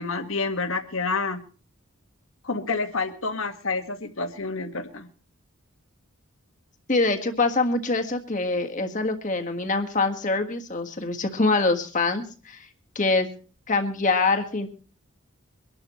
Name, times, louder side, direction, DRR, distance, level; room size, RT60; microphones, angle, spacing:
voice 1, 0.0-1.4 2.4-5.1, left 3 dB, 65° left, 6 dB, 1.7 m, -28 dB
voice 2, 6.9-12.7 12.9-13.3 13.7-14.7, left 3 dB, 35° left, 5 dB, 1.6 m, -24 dB
24.0 x 12.0 x 3.1 m, 0.38 s
head